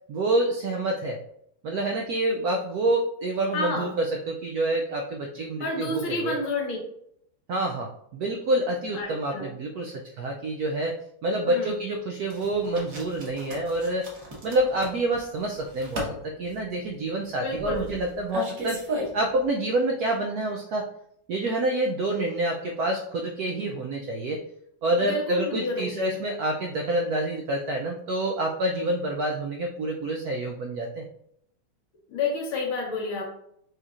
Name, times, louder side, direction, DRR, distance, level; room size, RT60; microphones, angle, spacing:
voice 1, 0.1-1.2 1.6-6.4 7.5-10.9 11.2-14.1 14.4-18.8 19.1-20.9 21.3-24.4 24.8-31.0, right 1 dB, 80° right, 1 dB, 0.8 m, -27 dB
voice 2, 3.5-3.9 5.6-6.8 8.9-9.5 11.5-11.8 17.4-17.9 25.0-26.2 32.1-33.3, left 3 dB, 85° left, 0 dB, 1.8 m, -30 dB
sound 1, 12.3-19.4, right 1 dB, 50° right, 1.5 m, -36 dB
6.3 x 2.9 x 2.4 m, 0.72 s
omnidirectional pair, 2.2 m